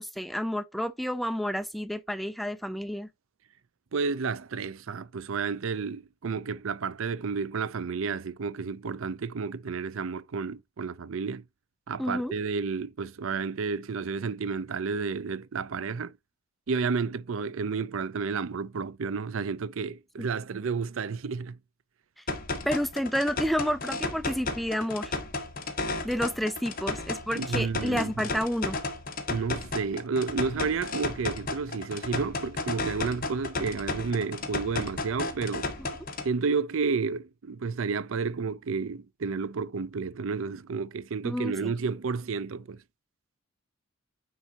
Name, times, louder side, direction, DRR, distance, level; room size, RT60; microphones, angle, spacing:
voice 1, 0.0-3.1 12.0-12.3 20.2-20.3 22.7-25.2 26.0-28.8 41.2-41.7, equal, ahead, 0.4 m, -30 dB
voice 2, 3.9-11.5 11.9-16.1 16.7-21.6 27.3-28.3 29.3-35.7 36.2-42.8, right 5 dB, 75° right, 0.5 m, -31 dB
sound 1, 22.3-36.3, left 3 dB, 45° left, 1.5 m, -34 dB
9.6 x 4.0 x 2.8 m
head